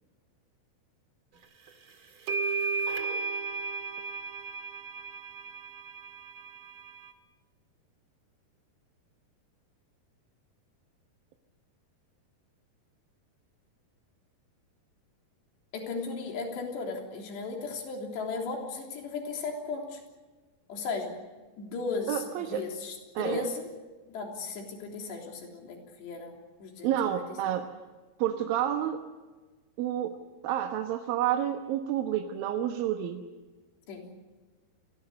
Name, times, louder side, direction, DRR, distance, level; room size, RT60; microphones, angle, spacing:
sound 1, 1.7-1.8 2.3-7.1, right 4 dB, 40° right, 2.1 m, -34 dB
voice 1, 15.7-20.0 20.7-21.1 21.6-23.7 24.1-27.2 33.9-34.0, left 4 dB, 80° left, 1 dB, 5.6 m, -36 dB
voice 2, 22.1-22.6 23.2-23.5 26.8-27.7 28.2-29.0 29.8-30.2 30.4-33.2, right 11 dB, 70° right, 5 dB, 2.7 m, -29 dB
28.0 x 20.5 x 6.9 m, 1.3 s
omnidirectional pair, 4.9 m